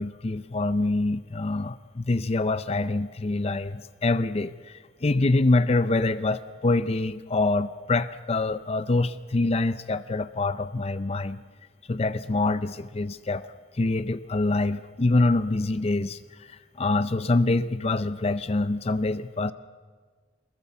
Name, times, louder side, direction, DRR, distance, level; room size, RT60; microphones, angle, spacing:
voice 1, 0.0-11.4 11.9-13.5 13.7-19.5, left 2 dB, 35° left, 13 dB, 0.5 m, -25 dB
23.0 x 21.0 x 7.0 m, 1.5 s
head